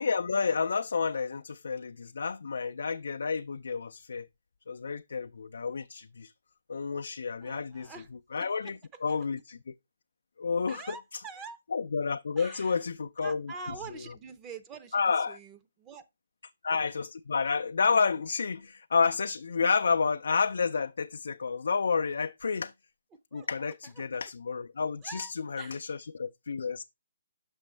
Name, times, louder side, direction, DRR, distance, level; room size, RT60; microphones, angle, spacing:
voice 1, 0.0-4.3 4.7-6.3 6.7-7.9 8.3-9.7 10.4-11.2 11.7-13.5 13.9-14.0 14.9-15.4 16.6-22.7 23.3-26.8, left 5 dB, 75° left, 0.3 m, -30 dB
voice 2, 7.4-8.1 8.3-8.7 10.7-11.6 12.4-12.8 13.2-16.0 23.3-23.7 25.0-25.3 25.6-25.8, right 5 dB, 20° right, 0.6 m, -45 dB
6.1 x 5.9 x 3.2 m
hypercardioid pair, 150°, 0 cm